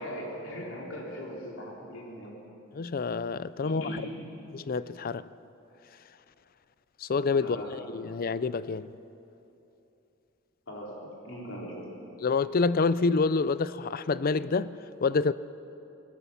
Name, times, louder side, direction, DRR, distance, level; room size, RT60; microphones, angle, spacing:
voice 1, 0.0-2.3 3.6-4.2 7.4-7.7 10.7-11.9, equal, 70° left, 4.5 m, -39 dB
voice 2, 2.7-3.9 4.5-5.2 7.0-7.6 7.9-8.9 12.2-14.7 15.0-15.3, left 4 dB, 45° left, 0.5 m, -27 dB
21.5 x 17.0 x 7.2 m
head